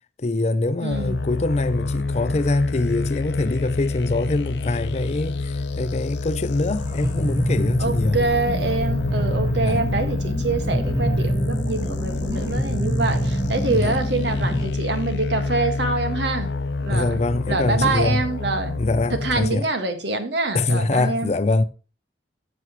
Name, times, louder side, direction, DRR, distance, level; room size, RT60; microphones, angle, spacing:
voice 1, 0.2-8.2 9.6-9.8 13.7-14.0 16.9-18.2 18.8-19.7 20.5-21.6, left 2 dB, 40° left, 0.5 m, -24 dB
voice 2, 0.8-1.2 7.8-16.5 16.8-17.2 17.5-18.8 19.2-21.3, right 3 dB, 80° right, 1.6 m, -25 dB
sound 1, 0.9-19.5, left 3 dB, 80° left, 0.6 m, -28 dB
sound 2, 6.7-14.7, right 1 dB, 20° right, 1.9 m, -26 dB
14.0 x 6.1 x 3.0 m
head